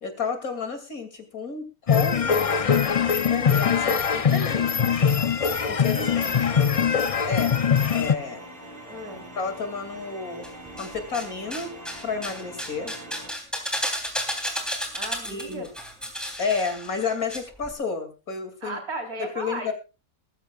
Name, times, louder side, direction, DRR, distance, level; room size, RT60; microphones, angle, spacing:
voice 1, 0.0-5.0 5.7-6.4 7.2-7.6 7.9-8.4 9.4-10.5 10.8-11.7 12.0-12.9 15.2-15.7 16.4-18.8 19.2-19.7, left 5 dB, 70° left, 6 dB, 3.1 m, -31 dB
sound 1, 1.9-8.1, left 7 dB, 40° left, 0.5 m, -22 dB
voice 2, 5.8-6.4 8.9-9.3 14.9-15.7 18.6-19.7, right 2 dB, 75° right, 3 dB, 4.6 m, -36 dB
sound 2, 6.0-13.3, right 1 dB, 25° right, 5.8 m, -43 dB
sound 3, 10.4-11.3 11.5-17.4 17.6-17.7, equal, ahead, 3.3 m, -32 dB
19.5 x 15.0 x 2.4 m, 0.30 s
omnidirectional pair, 1.6 m